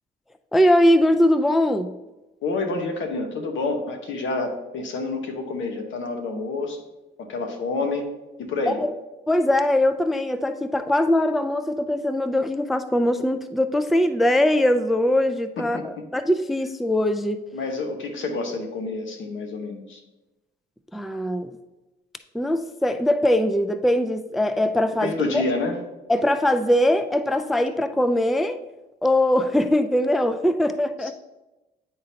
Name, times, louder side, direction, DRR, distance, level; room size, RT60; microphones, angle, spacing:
voice 1, 0.5-1.9 8.7-8.9 9.3-17.4 20.9-21.5 22.3-25.4 26.1-28.6 29.0-31.1, left 1 dB, ahead, 10 dB, 0.3 m, -21 dB
voice 2, 2.4-6.8 7.2-8.1 8.4-8.8 15.7-15.8 17.5-20.0 25.0-25.8 31.0-31.1, left 3 dB, 75° left, 4 dB, 1.1 m, -28 dB
9.8 x 3.8 x 2.8 m, 1.0 s
cardioid pair, 90°, 20 cm